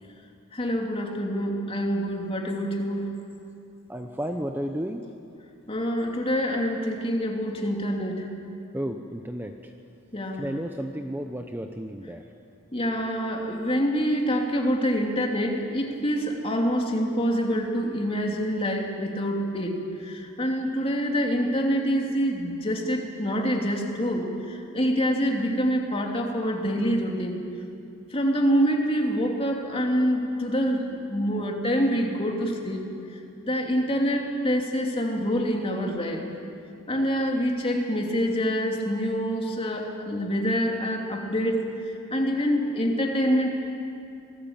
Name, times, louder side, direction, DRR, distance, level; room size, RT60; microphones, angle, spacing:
voice 1, 0.5-3.1 5.7-8.3 10.1-10.4 12.7-19.7 20.0-27.4 28.1-32.8 33.4-36.3 36.9-41.6 42.1-43.6, equal, 25° left, 1 dB, 2.9 m, -26 dB
voice 2, 3.9-5.0 8.7-9.7 10.3-12.3, equal, 10° right, 5 dB, 0.8 m, -32 dB
26.5 x 19.5 x 8.8 m, 2.6 s
head